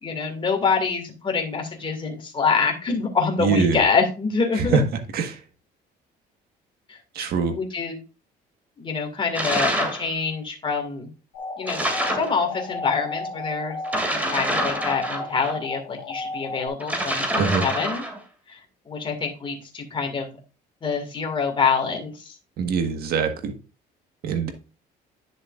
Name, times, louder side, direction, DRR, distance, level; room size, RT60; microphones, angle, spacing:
voice 1, 0.0-4.8 6.9-8.0 8.8-11.1 11.6-11.8 12.1-13.8 14.1-18.0 18.5-18.6 18.9-20.3 20.8-22.4, left 5 dB, 30° left, 3 dB, 2.3 m, -26 dB
voice 2, 3.4-3.8 4.6-4.8 5.1-5.4 7.1-7.5 17.4-17.6 22.6-23.5 24.2-24.5, right 5 dB, 65° right, 6 dB, 1.6 m, -23 dB
sound 1, 9.3-10.0 11.7-12.3 13.8-15.5 16.8-18.2, right 1 dB, 10° right, 2.5 m, -26 dB
sound 2, 11.3-16.7, left 3 dB, 85° left, 1.7 m, -34 dB
10.5 x 6.6 x 2.5 m, 0.30 s
cardioid pair, 110°, 17 cm